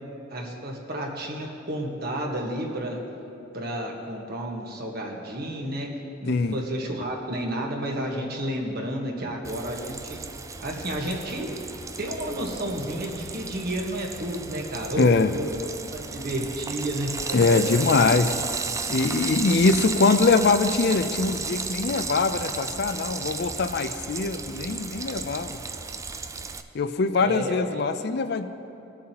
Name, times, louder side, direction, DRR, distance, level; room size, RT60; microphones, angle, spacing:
voice 1, 0.3-3.0 3.5-5.9 6.2-10.2 10.6-11.6 12.0-17.6 27.2-27.8, right 1 dB, 55° right, 0 dB, 1.4 m, -31 dB
Frying (food), 9.4-26.6, right 4 dB, 15° right, 0.3 m, -34 dB
voice 2, 15.0-15.3 17.3-18.4 18.9-25.6 26.7-28.5, left 4 dB, 60° left, 10 dB, 0.5 m, -22 dB
19.5 x 7.4 x 2.9 m, 2.7 s
head